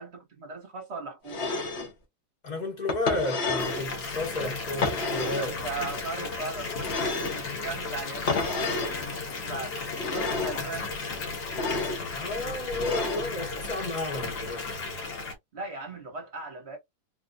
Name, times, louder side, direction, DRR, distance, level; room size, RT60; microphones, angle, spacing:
voice 1, 0.0-1.5 5.3-9.8 10.1-10.9 15.5-16.8, right 4 dB, 40° right, 1.2 m, -38 dB
sound 1, 1.3-1.9 2.9-3.9 4.8-5.5 6.8-7.5 8.3-9.0 9.9-10.6 11.5-12.0 12.8-13.3, left 3 dB, 45° left, 1.1 m, -30 dB
voice 2, 2.4-5.6 12.1-15.0, left 2 dB, 30° left, 1.1 m, -33 dB
Water tap faucet / Bathtub (filling or washing) / Fill (with liquid), 3.6-15.3, left 4 dB, 65° left, 1.7 m, -35 dB
3.4 x 2.9 x 2.6 m
omnidirectional pair, 1.9 m